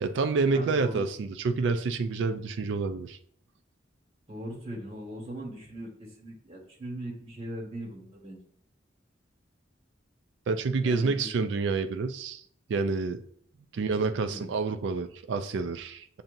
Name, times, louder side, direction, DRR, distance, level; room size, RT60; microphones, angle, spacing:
voice 1, 0.0-3.2 10.5-12.4 12.7-13.2 13.7-16.2, right 4 dB, 65° right, 9 dB, 0.3 m, -28 dB
voice 2, 0.5-1.0 4.3-8.4 10.8-11.3 14.3-14.5, equal, 30° right, -3 dB, 1.6 m, -39 dB
7.1 x 2.7 x 2.6 m, 0.64 s
head